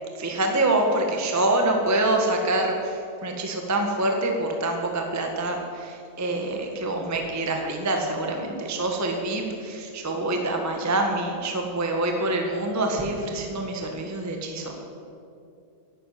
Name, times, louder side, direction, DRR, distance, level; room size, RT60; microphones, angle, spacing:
voice 1, 0.1-14.8, right 2 dB, 15° right, 2 dB, 0.5 m, -26 dB
11.0 x 11.0 x 9.2 m, 2.5 s
omnidirectional pair, 3.4 m